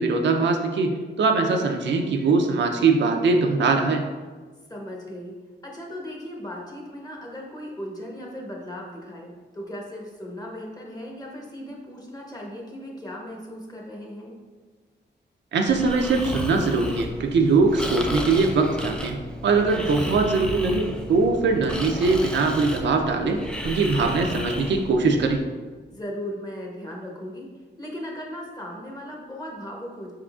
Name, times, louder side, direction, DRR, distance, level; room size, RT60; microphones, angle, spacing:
voice 1, 0.0-4.0 15.5-25.4, right 3 dB, 70° right, 4 dB, 0.5 m, -22 dB
voice 2, 4.7-5.3 5.6-14.4 19.7-20.2 25.9-27.5 27.8-30.1, equal, 20° left, -1 dB, 1.0 m, -37 dB
Breathing, 15.7-25.4, left 1 dB, 5° left, 0.4 m, -33 dB
4.8 x 3.7 x 2.4 m, 1.4 s
cardioid pair, 95°, 19 cm